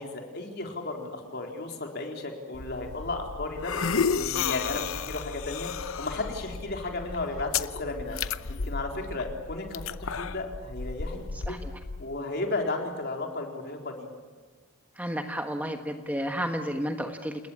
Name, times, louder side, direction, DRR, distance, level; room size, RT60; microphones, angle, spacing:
voice 1, 0.0-3.7 4.1-5.7 6.0-8.2 8.5-11.2 11.4-11.5 12.0-14.1, left 2 dB, 50° left, 2 dB, 4.1 m, -34 dB
sound 1, 2.5-12.0, left 5 dB, 70° left, 0.8 m, -33 dB
voice 2, 15.0-17.5, equal, 5° right, 5 dB, 1.3 m, -32 dB
28.5 x 20.5 x 8.7 m, 1.4 s
head